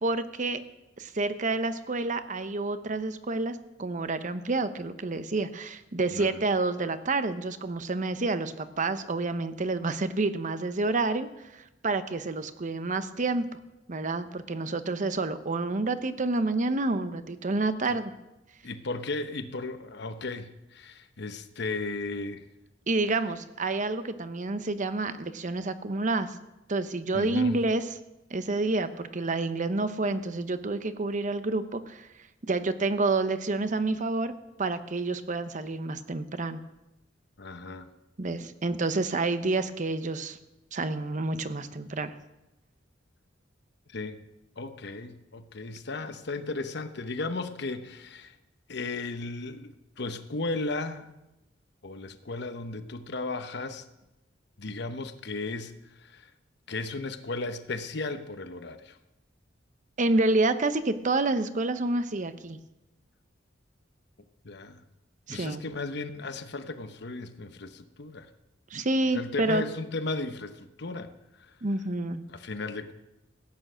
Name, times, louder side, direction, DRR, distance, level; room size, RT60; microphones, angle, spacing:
voice 1, 0.0-0.6 1.0-11.3 11.5-13.5 13.9-18.1 22.9-26.3 26.7-27.8 28.3-32.1 32.4-34.3 34.6-36.6 38.2-40.4 40.7-42.1 60.0-62.6 65.3-65.6 68.7-69.6 71.6-72.2, right 2 dB, 45° right, 11 dB, 0.8 m, -28 dB
voice 2, 6.1-6.4 17.9-18.0 18.6-22.4 27.1-27.6 37.4-37.9 43.9-44.2 44.6-48.4 48.7-51.1 51.8-53.8 54.6-56.3 56.7-59.0 64.4-64.8 65.3-68.3 69.1-71.1 71.4-71.6 72.3-72.9, left 3 dB, 65° left, 10 dB, 0.9 m, -35 dB
15.5 x 8.9 x 6.3 m, 0.95 s
head